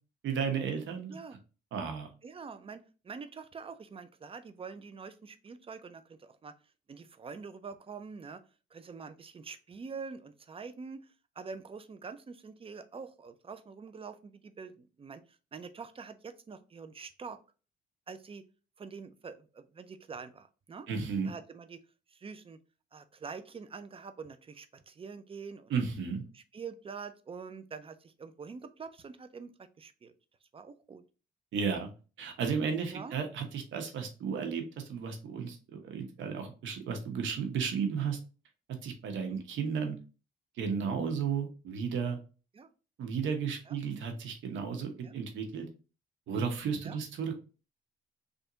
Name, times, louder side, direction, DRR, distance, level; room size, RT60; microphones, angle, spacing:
voice 1, 0.2-1.2 1.7-2.1 20.9-21.3 25.7-26.2 31.5-31.9 32.2-38.2 38.8-40.0 40.6-42.2 43.0-45.7 46.3-47.3, right 6 dB, 75° right, 5 dB, 1.1 m, -33 dB
voice 2, 2.2-6.5 6.9-8.4 8.7-11.1 11.4-15.2 15.5-17.4 18.1-18.4 18.8-20.9 21.2-21.8 22.1-22.6 22.9-25.7 26.3-29.5 29.8-30.1 30.5-31.0 32.9-33.2 39.3-39.4 42.5-42.7 43.7-43.8 45.0-45.2 46.8-47.0, right 5 dB, 30° right, 10 dB, 0.5 m, -45 dB
3.5 x 2.6 x 3.8 m, 0.34 s
cardioid pair, 100°, 20 cm